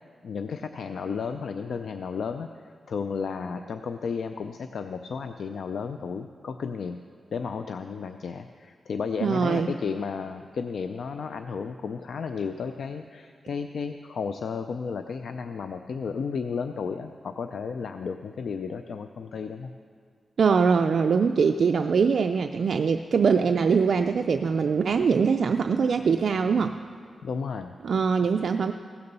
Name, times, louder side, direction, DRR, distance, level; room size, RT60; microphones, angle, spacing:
voice 1, 0.2-7.0 7.3-19.7 27.2-27.8, left 5 dB, 70° left, 8 dB, 0.4 m, -33 dB
voice 2, 9.2-9.7 20.4-26.8 27.8-28.7, right 5 dB, 60° right, 6 dB, 0.3 m, -22 dB
16.0 x 6.8 x 6.7 m, 2.1 s
wide cardioid pair, 150°, 0 cm